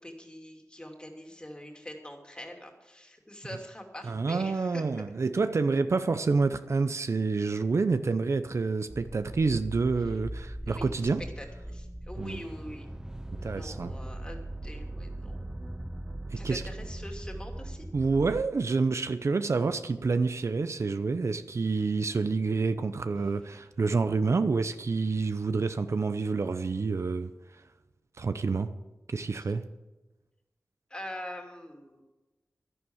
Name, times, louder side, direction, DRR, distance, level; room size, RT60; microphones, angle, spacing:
voice 1, 0.0-5.0 10.6-11.1 11.4-13.0 13.4-15.4 16.4-17.9 29.3-29.5 30.9-32.0, left 1 dB, 15° left, 2.8 m, -44 dB
voice 2, 4.0-11.2 12.2-12.4 13.4-13.9 16.4-16.6 17.9-27.3 28.2-28.7 29.1-29.6, right 4 dB, 60° right, 0.7 m, -28 dB
sound 1, 8.9-18.4, right 1 dB, 10° right, 0.5 m, -40 dB
11.5 x 11.0 x 7.3 m
wide cardioid pair, 65°, 5 cm